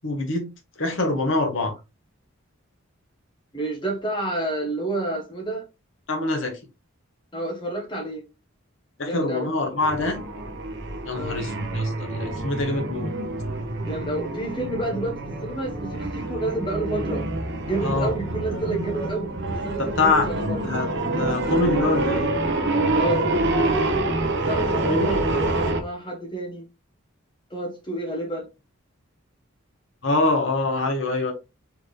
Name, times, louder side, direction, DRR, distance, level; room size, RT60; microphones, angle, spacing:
voice 1, 0.0-0.5 0.8-1.7 6.1-6.6 9.0-10.2 11.0-13.2 17.8-18.1 19.8-20.3 20.6-22.3 24.8-25.0 30.0-31.3, left 2 dB, 60° left, 1.1 m, -24 dB
voice 2, 3.5-5.6 7.3-8.2 9.0-9.5 11.1-11.4 13.8-17.2 17.6-19.3 19.6-20.6 22.9-23.5 24.4-26.6 27.5-28.5, right 2 dB, 20° left, 1.0 m, -29 dB
sound 1, 9.8-25.8, right 2 dB, 55° right, 0.8 m, -26 dB
4.6 x 3.3 x 3.1 m
head